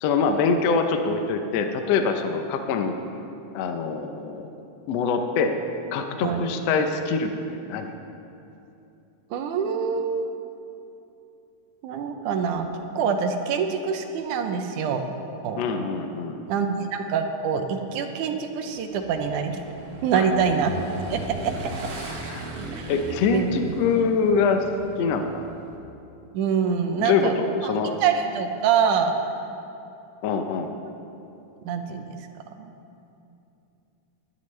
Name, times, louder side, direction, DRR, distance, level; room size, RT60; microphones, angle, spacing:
voice 1, 0.0-3.0 3.5-4.5 4.9-5.5 5.9-7.9 15.6-16.4 20.1-20.2 22.3-22.5 22.9-24.6 25.0-25.5 27.0-28.0 30.2-30.7, left 5 dB, 90° left, 5 dB, 1.4 m, -24 dB
voice 2, 9.3-10.3 11.8-12.7 13.0-15.0 15.4-15.6 16.5-19.6 20.0-20.7 21.1-21.5 22.7-22.9 23.3-23.7 26.3-27.3 27.6-29.1 31.7-32.2 32.6-32.7, right 6 dB, 75° right, 5 dB, 2.1 m, -25 dB
Motorcycle / Engine, 18.7-25.8, right 2 dB, 50° right, 2.3 m, -37 dB
20.0 x 11.5 x 3.3 m, 2.8 s
omnidirectional pair, 3.9 m